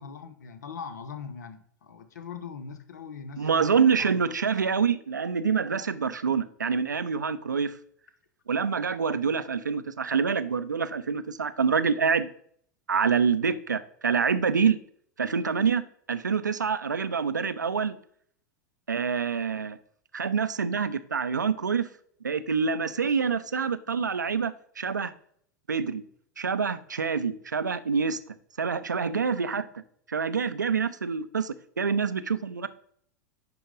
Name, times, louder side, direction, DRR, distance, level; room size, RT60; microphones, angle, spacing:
voice 1, 0.0-4.2, left 6 dB, 70° left, 0.9 m, -41 dB
voice 2, 3.4-7.8 8.5-12.3 12.9-14.8 15.2-15.8 16.1-18.0 18.9-19.8 20.1-21.9 22.2-25.1 25.7-26.0 26.4-28.2 28.6-29.7 30.1-32.7, right 6 dB, 85° right, 0.5 m, -26 dB
10.5 x 3.8 x 3.7 m
figure-of-eight pair, 90°, 10 cm